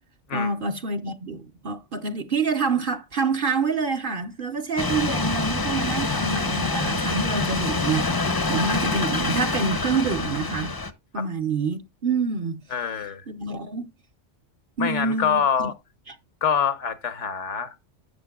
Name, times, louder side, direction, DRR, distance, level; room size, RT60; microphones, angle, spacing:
voice 1, 0.3-10.7 11.1-12.6 13.3-13.9 14.8-15.7 16.1-16.2, right 4 dB, 50° right, 0.9 m, -27 dB
sound 1, 4.8-10.9, left 3 dB, 25° left, 0.6 m, -26 dB
voice 2, 12.7-13.2 14.8-15.7 16.4-17.9, left 7 dB, 80° left, 1.3 m, -25 dB
12.5 x 8.3 x 2.3 m
omnidirectional pair, 1.2 m